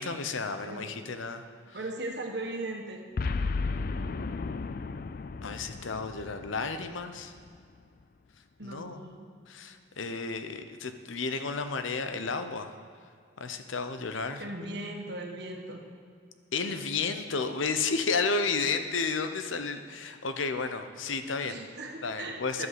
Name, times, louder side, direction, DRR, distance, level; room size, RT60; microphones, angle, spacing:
voice 1, 0.0-1.4 5.4-7.3 8.6-9.1 9.5-12.7 13.4-14.4 16.5-21.6 22.0-22.7, left 4 dB, 85° left, 8 dB, 0.8 m, -32 dB
voice 2, 1.7-3.0 8.6-9.3 14.4-15.8 21.4-22.7, right 2 dB, 55° right, 1 dB, 1.5 m, -38 dB
Boom, 3.2-7.6, left 4 dB, 45° left, 0.4 m, -34 dB
11.0 x 8.1 x 7.5 m, 2.1 s
head